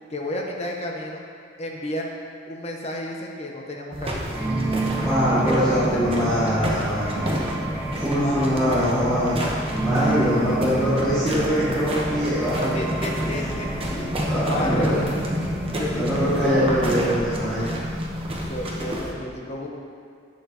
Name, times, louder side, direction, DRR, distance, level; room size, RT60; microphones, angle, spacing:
voice 1, 0.1-1.2 1.6-2.1 2.5-4.4 5.3-6.5 8.2-9.2 12.7-14.2 14.5-15.0 15.8-17.0 18.5-19.8, left 1 dB, 35° left, 0 dB, 1.0 m, -32 dB
sound 1, 3.9-19.1, equal, 30° right, 1.0 m, -29 dB
sound 2, 4.3-17.6, right 2 dB, 10° right, 0.6 m, -31 dB
voice 2, 5.0-7.3 8.0-9.4 9.8-12.8 13.2-13.3 14.3-15.1 15.9-17.6, equal, 5° left, -14 dB, 2.1 m, -23 dB
10.5 x 7.7 x 2.9 m, 2.2 s
head